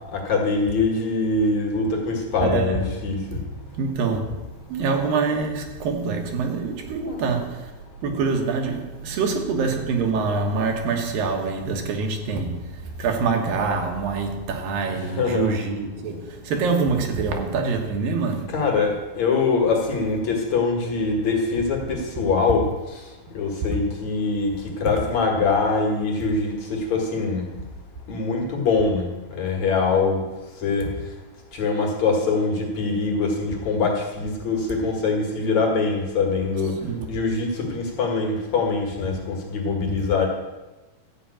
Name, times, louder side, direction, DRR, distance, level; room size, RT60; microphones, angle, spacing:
voice 1, 0.1-3.2 7.1-7.2 15.0-15.5 18.5-22.7 23.3-24.5 24.8-27.5 28.1-29.0 29.3-30.2 30.6-30.9 31.5-36.8 37.1-40.3, left 4 dB, 55° left, 2.8 m, -23 dB
voice 2, 2.4-2.9 3.3-7.7 8.0-18.6 36.8-37.1, right 4 dB, 75° right, 3.0 m, -25 dB
13.0 x 5.6 x 8.6 m
omnidirectional pair, 4.2 m